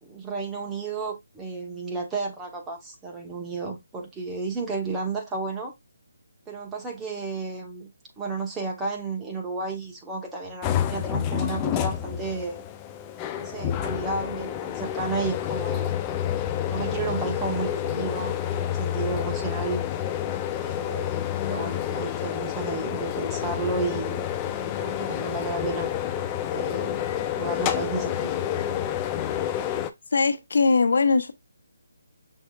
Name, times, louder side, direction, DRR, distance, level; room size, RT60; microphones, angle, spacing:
voice 1, 0.0-5.7 6.5-7.9 8.2-12.6 13.3-15.9 16.7-19.8 20.6-24.2 24.6-25.9 26.5-28.3, right 4 dB, 10° right, 1.0 m, -32 dB
sound 1, 10.6-29.9, left 10 dB, 15° left, 0.4 m, -29 dB
voice 2, 30.1-31.3, left 4 dB, 65° left, 0.9 m, -20 dB
6.4 x 3.5 x 2.3 m
hypercardioid pair, 165°, 0 cm